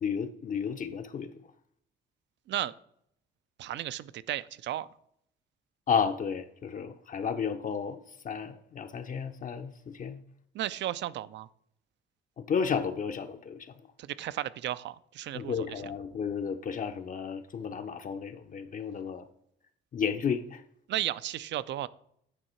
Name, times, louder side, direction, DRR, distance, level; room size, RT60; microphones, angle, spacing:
voice 1, 0.0-1.3 5.9-8.0 8.2-10.2 12.5-13.6 15.3-19.3 19.9-20.6, left 6 dB, 40° left, 0.5 m, -32 dB
voice 2, 3.6-4.9 10.5-11.5 14.0-15.8 20.9-21.9, right 13 dB, 65° right, 0.4 m, -34 dB
9.1 x 3.7 x 4.3 m
cardioid pair, 90°, 20 cm